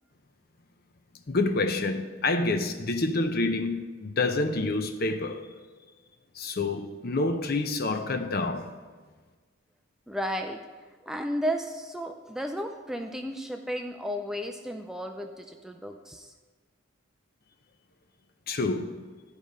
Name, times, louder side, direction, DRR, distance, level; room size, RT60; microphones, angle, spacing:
voice 1, 1.3-5.5 6.4-8.7 18.5-19.0, left 2 dB, 45° left, 0.6 m, -28 dB
voice 2, 10.1-10.6 11.0-16.3, equal, ahead, 0.3 m, -33 dB
12.0 x 4.9 x 5.3 m
head